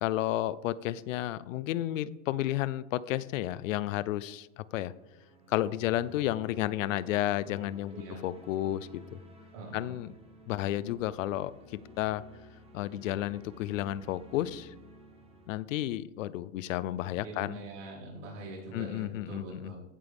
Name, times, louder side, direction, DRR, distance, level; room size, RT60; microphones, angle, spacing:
voice 1, 0.0-4.9 5.5-7.9 8.2-9.2 9.7-10.1 10.5-12.2 12.7-14.7 15.5-17.6 18.7-19.7, left 14 dB, 80° left, 18 dB, 0.7 m, -32 dB
sound 1, 4.4-15.5, equal, 15° right, 1.9 m, -53 dB
voice 2, 7.9-8.2 9.5-9.9 17.1-19.8, right 2 dB, 70° right, -3 dB, 4.7 m, -43 dB
15.0 x 8.9 x 3.6 m, 1.0 s
supercardioid pair, 135°, 38 cm